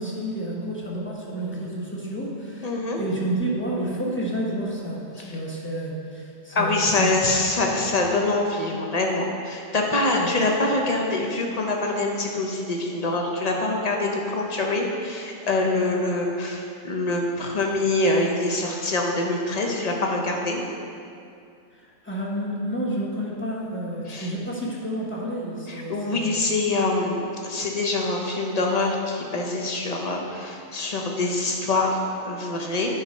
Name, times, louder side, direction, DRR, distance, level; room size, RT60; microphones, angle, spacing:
voice 1, 0.0-2.7 3.0-7.1 10.1-10.4 21.7-26.3, right 1 dB, 10° left, -4 dB, 1.0 m, -30 dB
voice 2, 2.6-3.0 5.2-5.4 6.5-20.6 24.1-24.3 25.7-33.0, left 2 dB, 35° left, 0 dB, 0.8 m, -25 dB
9.4 x 4.1 x 5.5 m, 2.4 s
omnidirectional pair, 1.4 m